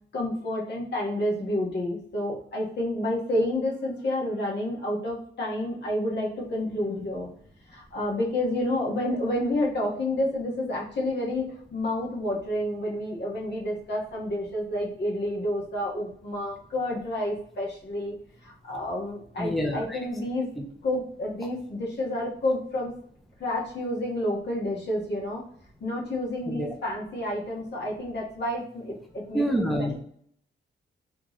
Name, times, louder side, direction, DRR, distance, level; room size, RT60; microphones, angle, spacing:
voice 1, 0.1-7.3 7.7-18.1 18.4-20.5 20.8-22.9 23.4-25.4 25.8-29.4, left 1 dB, 65° left, -3 dB, 1.5 m, -29 dB
voice 2, 19.4-20.0 20.6-20.7 26.5-26.7 29.3-30.0, equal, ahead, 2 dB, 0.6 m, -27 dB
3.5 x 3.1 x 4.0 m, 0.63 s
wide cardioid pair, 115°, 19 cm